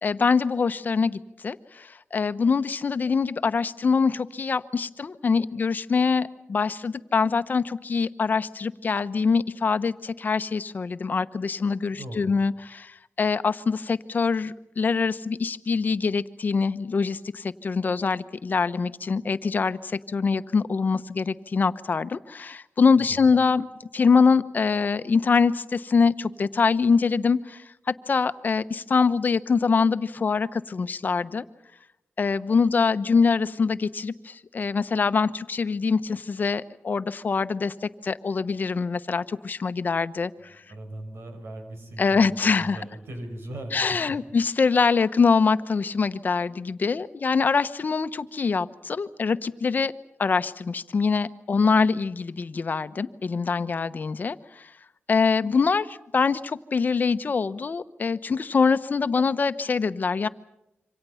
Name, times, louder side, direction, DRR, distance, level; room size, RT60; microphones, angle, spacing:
voice 1, 0.0-23.7 23.9-31.4 32.2-40.6 42.0-42.8 43.7-49.9 50.2-54.7 55.1-60.3, left 5 dB, 50° left, 12 dB, 1.0 m, -24 dB
voice 2, 11.9-12.3 22.9-23.3 40.3-44.2, right 1 dB, 75° right, 5 dB, 6.1 m, -39 dB
27.0 x 25.5 x 5.8 m, 0.87 s
wide cardioid pair, 95°, 4 cm